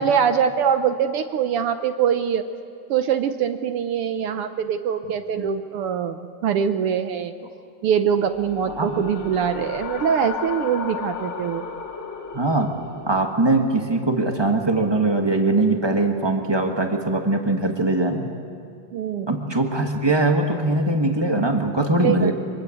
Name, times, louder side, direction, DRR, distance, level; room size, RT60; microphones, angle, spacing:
voice 1, 0.0-2.4 2.9-7.3 7.8-11.6 18.9-19.6 22.0-22.3, right 8 dB, 70° right, 9 dB, 1.4 m, -23 dB
sound 1, 8.2-13.3, left 6 dB, 50° left, 2.3 m, -34 dB
voice 2, 12.3-12.7 13.1-18.3 19.3-22.3, right 2 dB, 25° right, 3 dB, 0.5 m, -21 dB
24.5 x 22.5 x 8.5 m, 2.4 s
omnidirectional pair, 3.4 m